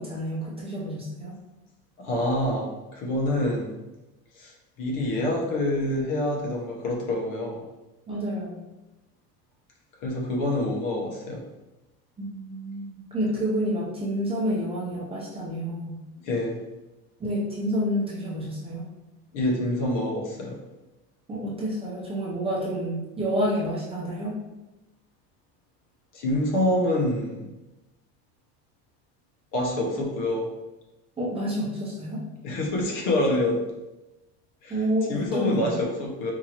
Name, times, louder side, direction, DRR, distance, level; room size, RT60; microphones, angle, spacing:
voice 1, 0.0-1.4 8.1-8.6 12.2-16.0 17.2-18.9 21.3-24.3 31.2-32.2 34.7-35.7, equal, 15° right, -6 dB, 0.7 m, -29 dB
voice 2, 2.0-3.8 4.4-4.5 4.8-7.6 10.0-11.4 16.2-16.6 19.3-20.6 26.1-27.5 29.5-30.5 32.4-33.6 34.6-34.8 35.1-36.3, left 1 dB, 50° left, -1 dB, 1.0 m, -26 dB
4.6 x 2.6 x 2.9 m, 1.0 s
cardioid pair, 165°, 39 cm